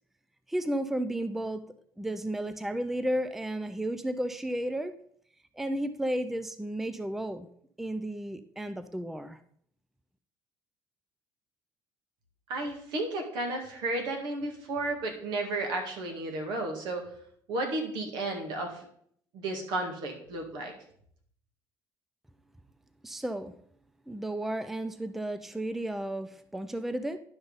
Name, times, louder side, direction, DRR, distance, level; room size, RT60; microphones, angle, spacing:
voice 1, 0.5-1.6 2.0-4.9 5.5-7.5 7.8-9.4 23.0-23.5 24.1-27.2, right 1 dB, 5° right, 11 dB, 0.4 m, -33 dB
voice 2, 12.5-17.1 17.5-18.8 19.3-20.7, right 2 dB, 75° right, 2 dB, 2.1 m, -33 dB
11.0 x 5.4 x 4.0 m, 0.64 s
cardioid pair, 130°, 8 cm